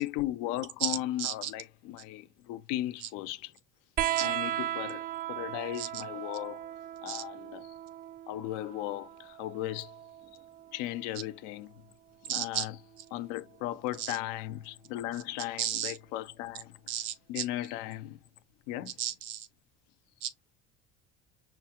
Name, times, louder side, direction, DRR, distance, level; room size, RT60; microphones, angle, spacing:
voice 1, 0.0-3.5 4.2-6.7 7.0-7.7 8.3-9.9 10.7-11.7 12.2-12.8 13.1-16.7 17.3-18.2 18.7-18.9, left 14 dB, 70° left, 0.6 m, -36 dB
voice 2, 0.8-1.5 4.2-4.3 5.8-5.9 7.1-7.2 12.3-12.7 14.0-14.1 15.6-15.9 16.9-17.4 19.0-19.5 20.2-20.3, right 11 dB, 70° right, 0.8 m, -33 dB
sound 1, 4.0-11.0 12.4-13.2 14.5-14.6, right 12 dB, 25° right, 0.3 m, -37 dB
5.4 x 2.4 x 2.9 m
hypercardioid pair, 70°, 34 cm